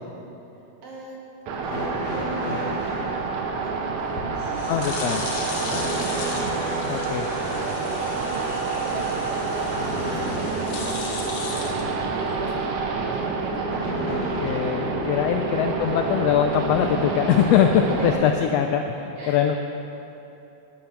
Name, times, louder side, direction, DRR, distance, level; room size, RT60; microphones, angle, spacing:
voice 1, 0.5-1.2 1.5-6.6 7.3-13.9 15.6-15.8 16.8-17.4 17.9-18.4 19.2-19.6, right 2 dB, 60° right, -3 dB, 2.3 m, -40 dB
sound 1, 1.5-18.1, right 4 dB, 75° right, 2.3 m, -28 dB
sound 2, 1.7-3.1 5.6-10.7 13.7-14.8 16.0-16.1 17.1-17.2, left 1 dB, 45° left, 3.0 m, -34 dB
sound 3, 4.0-12.5, left 4 dB, 65° left, 2.2 m, -37 dB
voice 2, 4.7-5.2 6.9-7.3 14.1-19.6, left 9 dB, 85° left, 5 dB, 1.4 m, -22 dB
10.5 x 9.9 x 6.0 m, 3.0 s
omnidirectional pair, 3.4 m